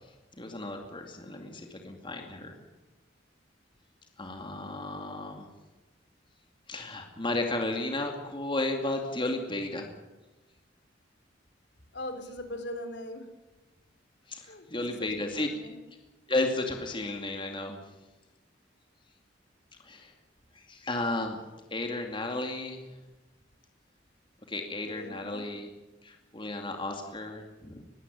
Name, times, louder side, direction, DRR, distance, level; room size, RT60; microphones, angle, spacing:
voice 1, 0.4-2.5 4.2-5.5 6.7-9.9 14.3-15.5 16.3-17.8 19.8-20.1 20.5-21.4 21.7-22.8 24.5-25.7 26.0-27.8, left 2 dB, 25° left, 3 dB, 2.4 m, -33 dB
voice 2, 11.9-13.3 14.4-15.8 24.9-25.5, left 1 dB, 65° left, 8 dB, 3.5 m, -41 dB
21.0 x 16.5 x 9.9 m, 1.1 s
head